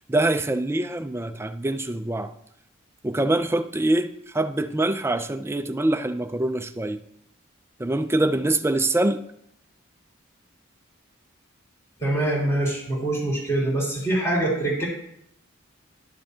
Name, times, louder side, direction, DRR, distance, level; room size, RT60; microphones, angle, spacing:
voice 1, 0.1-2.3 3.0-7.0 7.8-9.2, right 2 dB, 10° right, 9 dB, 0.4 m, -24 dB
voice 2, 12.0-14.9, right 1 dB, 15° left, -5 dB, 3.5 m, -24 dB
12.0 x 6.9 x 2.8 m, 0.74 s
head